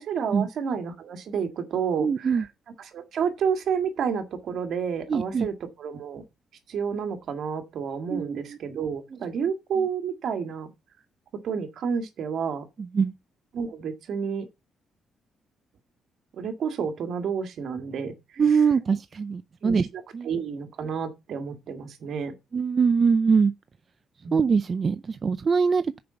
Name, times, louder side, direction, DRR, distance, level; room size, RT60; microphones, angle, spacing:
voice 1, 0.0-2.5 2.8-6.2 6.7-10.7 11.4-12.6 13.5-14.5 16.4-18.6 19.6-22.3 24.2-24.4, right 6 dB, 65° right, 1.9 m, -30 dB
voice 2, 2.0-2.5 5.1-5.5 8.1-8.6 12.8-13.1 18.4-19.9 20.1-20.3 22.5-23.5 24.3-26.0, right 5 dB, 40° right, 0.5 m, -23 dB
6.8 x 5.3 x 6.9 m
cardioid pair, 90°, 0 cm